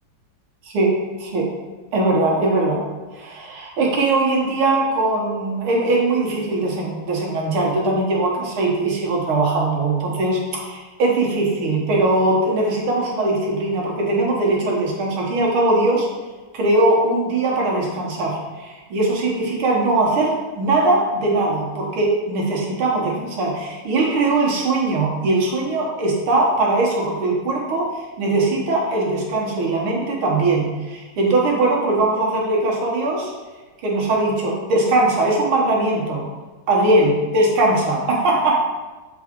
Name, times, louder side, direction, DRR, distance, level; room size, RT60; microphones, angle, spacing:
voice 1, 0.7-1.5 1.9-2.8 3.1-16.1 16.5-33.3 33.8-36.3 36.7-38.6, right 2 dB, 80° right, -2 dB, 2.1 m, -20 dB
7.4 x 4.7 x 3.7 m, 1.2 s
omnidirectional pair, 2.3 m